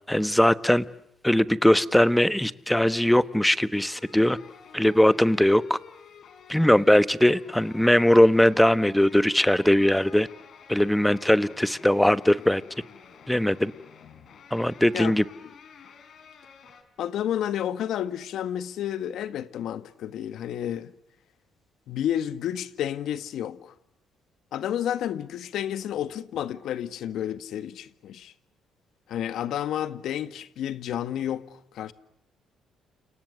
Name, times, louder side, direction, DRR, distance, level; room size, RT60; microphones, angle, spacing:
voice 1, 0.1-0.8 1.2-4.4 4.7-5.8 6.5-10.3 10.7-12.6 13.3-13.7 14.5-15.2, left 1 dB, 5° left, 1.1 m, -20 dB
sound 1, 3.7-16.8, left 7 dB, 55° left, 4.7 m, -50 dB
voice 2, 17.0-20.9 21.9-23.7 24.5-28.3 29.1-31.9, left 10 dB, 70° left, 1.8 m, -31 dB
30.0 x 28.0 x 6.6 m
cardioid pair, 120°, 0 cm